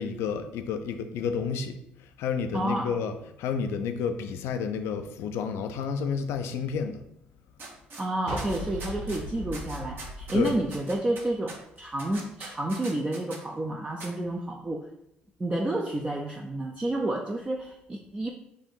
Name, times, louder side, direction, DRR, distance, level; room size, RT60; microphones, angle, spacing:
voice 1, 0.0-1.8 2.2-7.0 10.3-10.6, left 6 dB, 75° left, 7 dB, 0.5 m, -30 dB
voice 2, 2.5-3.0 8.0-14.9 15.4-18.3, right 1 dB, 20° right, 0 dB, 0.6 m, -30 dB
sound 1, 7.6-8.0 8.4-9.2 9.5-13.4 14.0-14.1, right 3 dB, 55° right, 1.1 m, -42 dB
sound 2, 8.3-11.5, equal, 90° right, 0.7 m, -39 dB
4.6 x 2.5 x 4.5 m, 0.79 s
hypercardioid pair, 55°, 4 cm